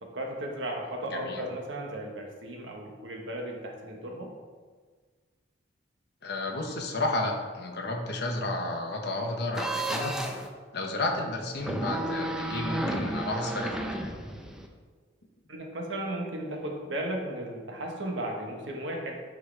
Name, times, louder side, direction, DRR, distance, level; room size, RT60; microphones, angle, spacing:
voice 1, 0.0-4.3 15.5-19.2, right 1 dB, 70° right, 0 dB, 1.2 m, -35 dB
voice 2, 1.1-1.4 6.2-10.2 10.7-14.2, left 2 dB, 55° left, 1 dB, 1.0 m, -32 dB
sound 1, 9.5-10.5 11.6-14.7, right 1 dB, 5° right, 0.5 m, -32 dB
10.0 x 4.8 x 3.4 m, 1.5 s
head